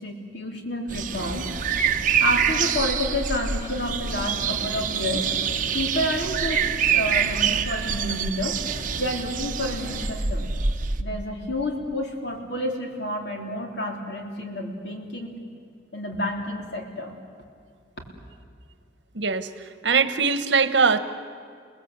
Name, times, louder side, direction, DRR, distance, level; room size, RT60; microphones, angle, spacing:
voice 1, 0.0-1.5 2.2-5.3 5.7-8.6 9.0-10.5 11.0-15.4 15.9-17.2, left 1 dB, 65° left, 2 dB, 3.5 m, -29 dB
sound 1, 0.9-11.0, right 7 dB, 45° right, 1.0 m, -26 dB
voice 2, 19.1-19.5 19.8-21.0, right 5 dB, 70° right, 12 dB, 1.2 m, -21 dB
29.5 x 19.5 x 8.2 m, 2.2 s
head